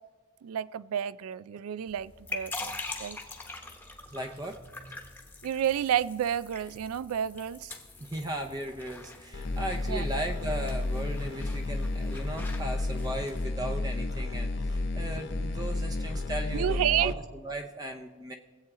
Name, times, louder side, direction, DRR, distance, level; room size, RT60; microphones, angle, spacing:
voice 1, 0.4-3.2 5.4-7.7 9.9-10.0 16.5-17.1, right 10 dB, 85° right, 18 dB, 0.3 m, -30 dB
sound 1, 1.9-13.5, left 3 dB, 10° left, 1.0 m, -44 dB
voice 2, 4.1-5.0 8.0-18.3, right 1 dB, 20° right, 4 dB, 0.6 m, -37 dB
sound 2, 9.3-17.1, left 2 dB, 50° left, 0.7 m, -32 dB
22.5 x 8.3 x 3.6 m, 1.5 s
head